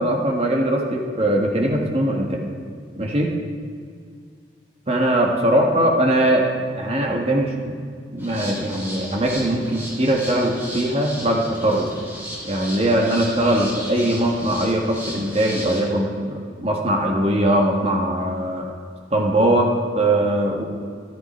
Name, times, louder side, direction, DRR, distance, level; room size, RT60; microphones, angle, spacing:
voice 1, 0.0-2.5 3.0-3.3 4.9-6.5 6.8-7.7 8.1-11.9 12.4-18.7 19.1-20.6, right 1 dB, 35° right, 0 dB, 1.6 m, -21 dB
sound 1, 8.2-15.8, equal, 15° right, 3.3 m, -35 dB
13.5 x 13.0 x 4.5 m, 2.1 s
head